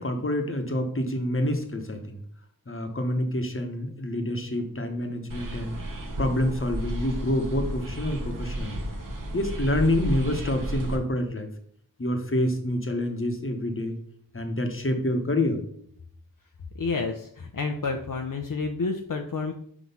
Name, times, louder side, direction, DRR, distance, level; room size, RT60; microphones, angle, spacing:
voice 1, 0.0-2.2 2.7-5.8 6.2-8.8 9.3-11.5 12.0-13.9 14.3-15.6, left 1 dB, 35° left, 5 dB, 1.0 m, -27 dB
sound 1, 5.3-11.0, right 1 dB, 60° right, 1.0 m, -33 dB
voice 2, 16.7-19.5, left 4 dB, 65° left, 3 dB, 0.6 m, -29 dB
6.0 x 3.0 x 5.4 m, 0.64 s
wide cardioid pair, 55°, 36 cm